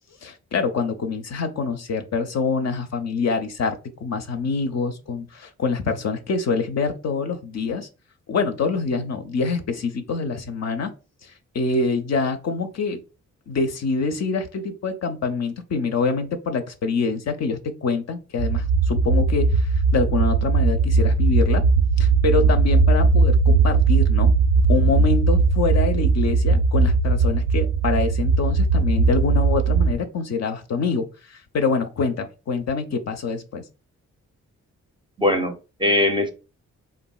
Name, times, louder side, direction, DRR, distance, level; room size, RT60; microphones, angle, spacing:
voice 1, 0.2-7.9 8.3-10.9 11.2-13.0 13.5-21.6 22.0-24.3 24.7-33.6, left 4 dB, 50° left, 0.5 m, -25 dB
sound 1, 18.4-29.9, right 4 dB, 75° right, 0.5 m, -19 dB
voice 2, 35.2-36.3, left 1 dB, 15° right, 0.5 m, -21 dB
3.1 x 2.4 x 2.2 m
supercardioid pair, 45°, 34 cm